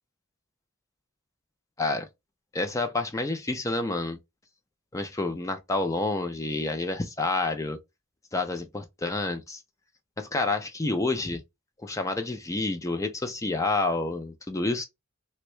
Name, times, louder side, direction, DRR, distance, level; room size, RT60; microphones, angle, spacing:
voice 1, 1.8-2.1 2.5-4.2 4.9-7.8 8.3-9.6 10.2-11.4 11.8-14.9, left 2 dB, 15° left, 0.4 m, -29 dB
3.4 x 2.1 x 3.0 m
head